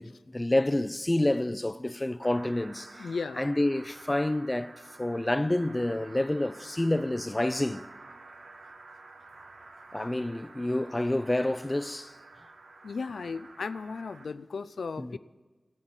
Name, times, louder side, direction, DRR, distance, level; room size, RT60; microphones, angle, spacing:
voice 1, 0.0-3.1 3.4-7.8 9.9-12.1 15.0-15.2, left 1 dB, 25° left, 0.5 m, -28 dB
sound 1, 2.2-14.3, right 3 dB, 85° right, 1.2 m, -50 dB
voice 2, 3.0-3.4 12.8-15.2, left 4 dB, 90° left, 0.4 m, -35 dB
12.0 x 8.8 x 9.8 m
cardioid pair, 55°, 0 cm